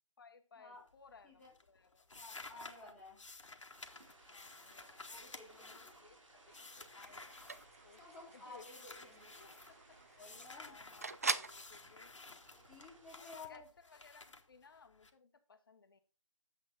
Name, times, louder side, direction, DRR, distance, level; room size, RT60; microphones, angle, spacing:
voice 1, 0.2-2.1 4.3-5.3 5.7-7.3 7.8-12.2 13.1-16.0, left 5 dB, 40° left, 1.0 m, -62 dB
sound 1, 0.7-1.2 1.4-8.2 8.5-9.7 10.2-15.1, left 3 dB, 65° left, 1.3 m, -54 dB
voice 2, 2.1-3.2 5.1-5.9 8.0-9.3 10.2-10.8 12.5-13.7, left 3 dB, 5° left, 1.8 m, -54 dB
sound 2, 3.7-13.2, right 2 dB, 65° right, 3.1 m, -63 dB
sound 3, 6.5-11.6, right 3 dB, 30° right, 0.3 m, -44 dB
8.8 x 7.4 x 3.9 m
figure-of-eight pair, 155°, 17 cm